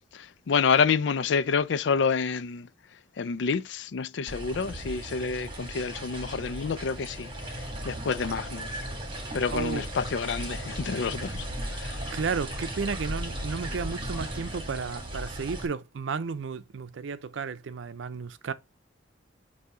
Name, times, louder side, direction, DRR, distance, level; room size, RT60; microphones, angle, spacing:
voice 1, 0.1-2.7 3.2-7.3 7.8-8.8 9.3-11.5 11.7-12.0, left 5 dB, 70° left, 0.4 m, -28 dB
sound 1, 4.3-15.7, right 1 dB, 25° right, 1.6 m, -36 dB
voice 2, 9.5-9.8 12.1-18.5, right 5 dB, 85° right, 0.5 m, -33 dB
8.0 x 2.7 x 4.8 m
head